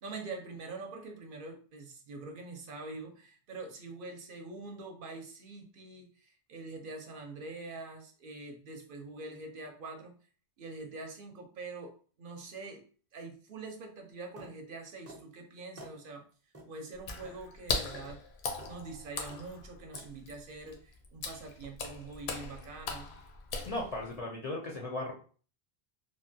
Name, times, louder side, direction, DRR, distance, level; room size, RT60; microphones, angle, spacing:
voice 1, 0.0-10.1 10.6-12.9 13.1-16.2 16.7-18.2 18.6-23.2, right 3 dB, 65° right, 3 dB, 0.7 m, -44 dB
sound 1, 14.4-14.5 15.1-15.3 15.8-16.0 16.5-16.7 17.2-17.4 17.9-18.1 18.6-18.8 19.3-19.5 19.9-20.1, right 1 dB, 25° right, 0.3 m, -49 dB
Water / Splash splatter, 17.0-24.2, left 4 dB, 80° left, 0.8 m, -39 dB
voice 2, 23.6-25.1, left 2 dB, 50° left, -1 dB, 0.4 m, -36 dB
3.2 x 2.1 x 2.6 m, 0.41 s
omnidirectional pair, 1.1 m